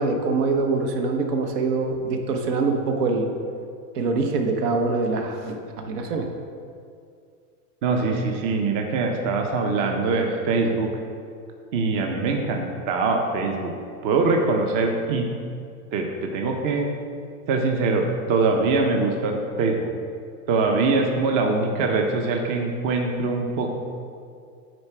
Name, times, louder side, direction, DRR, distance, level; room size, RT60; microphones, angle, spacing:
voice 1, 0.0-3.3 3.9-6.3, right 3 dB, 75° right, 3 dB, 1.2 m, -24 dB
voice 2, 7.8-10.9 11.7-13.7 14.0-15.3 15.9-16.9 17.5-19.9 20.5-23.7, right 3 dB, 40° right, 2 dB, 0.8 m, -23 dB
9.5 x 4.1 x 4.5 m, 2.3 s
supercardioid pair, 135°, 47 cm